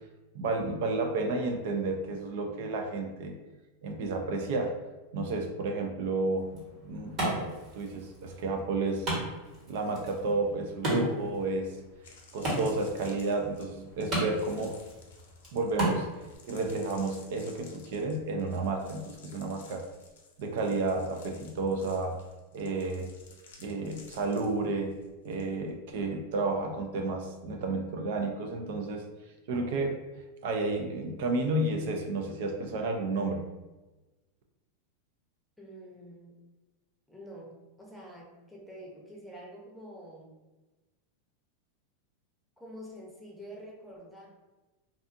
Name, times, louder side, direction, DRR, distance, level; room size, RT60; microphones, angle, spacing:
voice 1, 0.3-3.4 3.8-4.8 5.1-6.5 6.8-9.1 9.7-11.8 12.3-14.8 15.5-16.1 16.5-19.8 20.4-22.2 22.5-23.1 23.6-25.0 25.2-29.0 29.5-30.0 30.4-33.4, right 3 dB, 65° right, 4 dB, 0.3 m, -31 dB
Wood, 6.4-16.4, right 1 dB, 35° right, 1.2 m, -36 dB
sound 1, 11.9-25.4 25.7-26.0, left 4 dB, 80° left, 0.6 m, -55 dB
voice 2, 35.6-36.4 37.1-40.4 42.6-44.3, equal, ahead, -3 dB, 0.7 m, -47 dB
2.5 x 2.3 x 2.5 m, 1.1 s
supercardioid pair, 125°, 0 cm